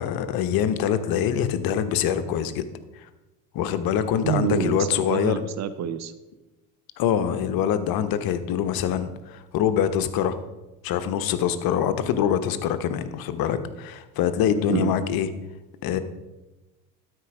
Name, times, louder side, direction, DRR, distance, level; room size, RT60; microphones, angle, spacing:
voice 1, 0.0-2.6 3.5-5.4 7.0-10.4 10.8-15.3 15.8-16.0, left 9 dB, 50° left, 11 dB, 0.9 m, -24 dB
voice 2, 4.2-6.1 14.7-14.9, right 9 dB, 35° right, 13 dB, 0.6 m, -27 dB
12.5 x 4.6 x 5.0 m, 1.1 s
hypercardioid pair, 65°, 46 cm